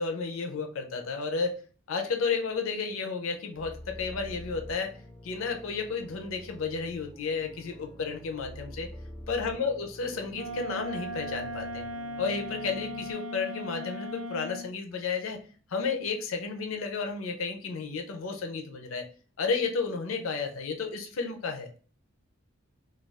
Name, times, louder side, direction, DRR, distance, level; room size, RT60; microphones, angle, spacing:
voice 1, 0.0-1.6 1.9-4.9 5.2-8.9 9.3-11.8 12.2-15.4 15.7-19.1 19.4-21.7, left 4 dB, 70° left, 4 dB, 0.5 m, -32 dB
sound 1, 3.5-13.1, equal, 10° left, 0.3 m, -47 dB
Wind instrument woodwind instrument, 10.3-14.7, equal, 90° right, 0.5 m, -38 dB
2.4 x 2.3 x 3.3 m, 0.40 s
head